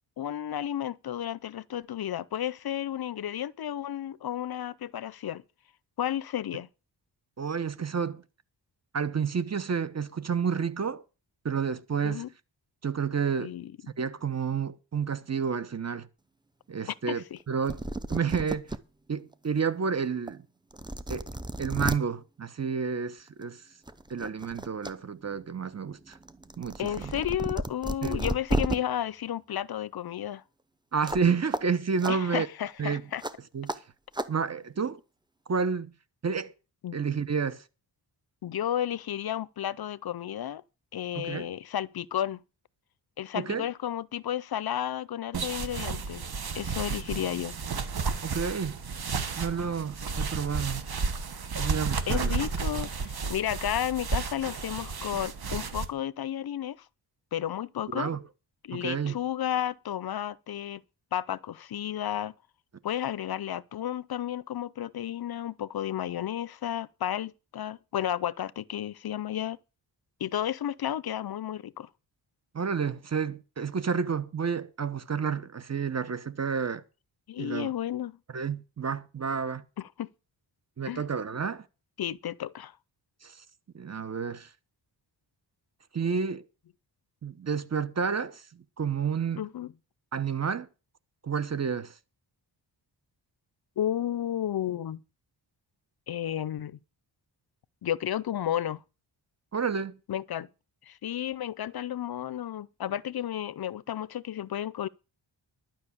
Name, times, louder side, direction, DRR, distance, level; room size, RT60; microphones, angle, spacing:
voice 1, 0.2-5.4 6.0-6.7 12.0-12.3 13.4-13.7 17.1-17.4 26.8-30.4 32.1-33.2 36.8-37.0 38.4-40.6 40.9-42.4 43.2-47.6 52.1-56.9 57.3-58.1 58.6-60.8 61.1-62.3 62.8-69.6 70.2-71.9 77.3-78.2 79.8-80.1 80.9-81.0 82.0-82.8 89.4-89.7 93.8-95.0 96.1-96.8 97.8-98.8 100.1-100.5 100.8-104.9, left 11 dB, 55° left, 0.5 m, -32 dB
voice 2, 7.4-8.2 8.9-11.0 11.4-12.2 12.8-13.5 14.0-16.1 16.7-17.8 18.1-18.7 19.1-20.4 21.1-21.3 21.6-23.6 24.1-26.2 26.6-27.1 28.0-28.3 30.9-32.5 32.8-33.0 33.5-33.7 34.3-35.0 35.5-35.9 36.2-36.5 36.9-37.6 41.1-41.5 43.3-43.7 48.2-48.8 49.4-50.8 51.5-52.4 57.9-58.2 58.7-59.2 72.5-76.8 77.4-77.7 78.3-79.6 80.8-81.6 83.2-83.4 83.7-84.5 85.9-86.4 87.2-88.4 88.8-89.5 90.1-90.7 91.2-91.9 99.5-100.0, right 6 dB, 35° right, 0.9 m, -30 dB
sound 1, 17.4-17.5 17.7-18.8 19.3-19.4 20.3-20.4 20.7-22.0 23.3-23.5 23.9-24.9 25.3-28.8 31.0-31.3 31.5-31.6 32.0-32.1 33.2-33.3 33.7-33.8 34.1-34.3, right 1 dB, 10° right, 0.7 m, -32 dB
sound 2, 45.3-55.9, right 5 dB, 55° right, 1.4 m, -32 dB
12.0 x 5.9 x 8.4 m
wide cardioid pair, 120°, 44 cm